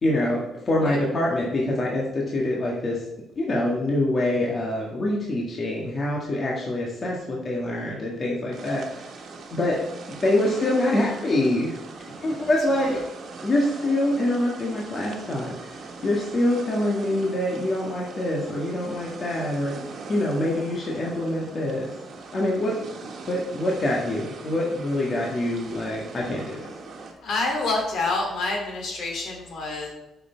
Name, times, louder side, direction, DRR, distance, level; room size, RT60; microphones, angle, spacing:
voice 1, 0.0-3.0 3.4-9.0 9.5-9.8 10.1-11.8 12.2-13.0 13.4-19.7 20.1-21.9 22.3-22.8 23.3-26.7, left 1 dB, 40° left, -3 dB, 1.8 m, -25 dB
sound 1, 8.5-27.1, right 4 dB, 60° right, 1.5 m, -41 dB
voice 2, 12.4-13.0 27.2-29.9, left 3 dB, 70° left, 1 dB, 2.8 m, -28 dB
8.4 x 5.9 x 4.5 m, 0.93 s
cardioid pair, 90°, 0 cm